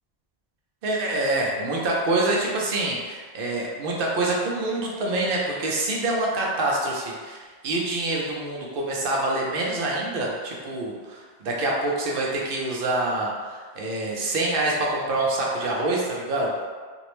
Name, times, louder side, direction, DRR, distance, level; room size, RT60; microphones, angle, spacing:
voice 1, 0.8-16.7, right 2 dB, 65° right, -2 dB, 0.7 m, -26 dB
2.5 x 2.0 x 2.9 m, 1.5 s
omnidirectional pair, 1.1 m